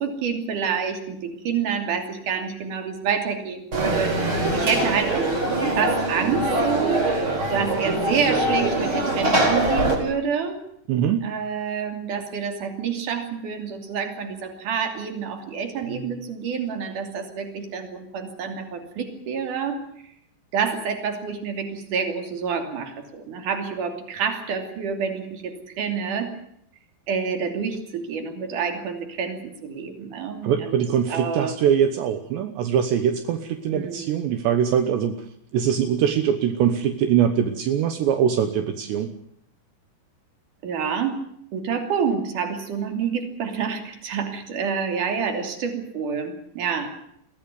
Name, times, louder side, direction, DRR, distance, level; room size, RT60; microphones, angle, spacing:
voice 1, 0.0-5.3 5.7-10.6 11.2-19.8 20.5-26.3 27.1-30.8 31.1-31.7 33.7-34.2 40.6-41.2 41.5-46.9, right 6 dB, 50° right, 6 dB, 4.0 m, -28 dB
Conversation / Crowd, 3.7-10.0, right 1 dB, 30° right, 5.0 m, -23 dB
voice 2, 10.9-11.3 30.4-35.2 35.5-39.1, right 8 dB, 75° right, 8 dB, 3.3 m, -22 dB
22.5 x 16.0 x 9.6 m, 0.72 s
omnidirectional pair, 5.2 m